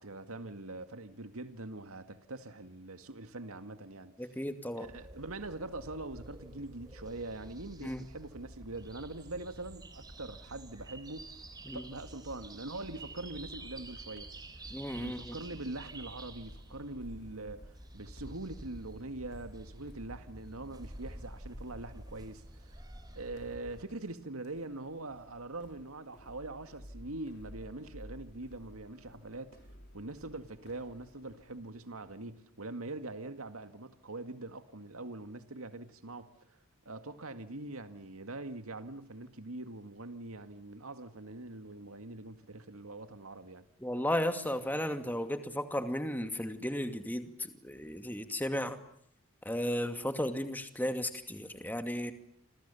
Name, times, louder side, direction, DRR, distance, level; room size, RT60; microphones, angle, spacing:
voice 1, 0.0-4.1 4.8-11.3 11.7-14.3 14.9-22.8 23.2-29.6 29.9-36.6 36.9-43.7, right 2 dB, 80° right, 2.2 m, -43 dB
voice 2, 4.2-4.9 7.8-8.0 11.7-11.9 14.7-15.4 43.8-48.8 49.4-52.1, left 1 dB, 10° left, 2.5 m, -34 dB
sound 1, 4.8-23.8, right 1 dB, 20° right, 3.4 m, -49 dB
sound 2, 12.6-32.2, equal, 50° left, 4.7 m, -55 dB
29.0 x 27.0 x 7.1 m
head